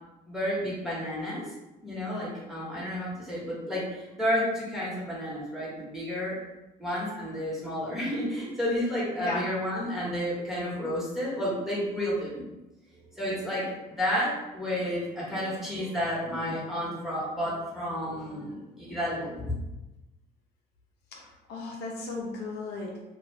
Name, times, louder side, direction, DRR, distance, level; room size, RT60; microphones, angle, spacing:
voice 1, 0.3-1.4 1.8-6.4 6.8-12.4 13.1-19.5, equal, ahead, -7 dB, 1.1 m, -31 dB
voice 2, 21.1-23.0, left 3 dB, 75° left, -1 dB, 0.6 m, -36 dB
2.5 x 2.3 x 3.1 m, 0.99 s
cardioid pair, 110°, 17 cm